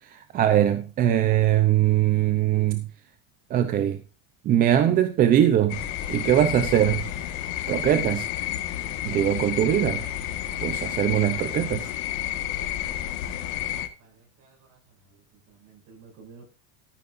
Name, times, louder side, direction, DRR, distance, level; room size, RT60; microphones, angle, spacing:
voice 1, 0.0-2.9 3.5-4.0 4.4-5.8 6.1-7.1 7.7-8.3 9.0-10.0 10.6-11.9, right 11 dB, 25° right, 0.6 m, -21 dB
sound 1, 5.7-13.9, left 12 dB, 50° left, 1.7 m, -30 dB
voice 2, 13.8-16.5, right 4 dB, 40° right, 7.5 m, -53 dB
13.5 x 10.5 x 2.6 m
supercardioid pair, 170°, 38 cm